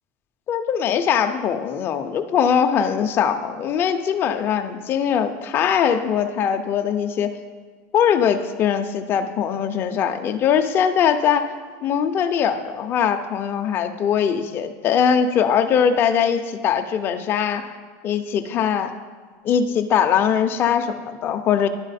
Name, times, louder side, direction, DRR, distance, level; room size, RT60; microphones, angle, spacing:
voice 1, 0.5-7.4 7.9-11.5 11.8-17.7 18.0-18.9 19.4-21.7, left 8 dB, 25° left, 7 dB, 0.3 m, -21 dB
11.0 x 3.8 x 4.1 m, 1.5 s
supercardioid pair, 175°, 9 cm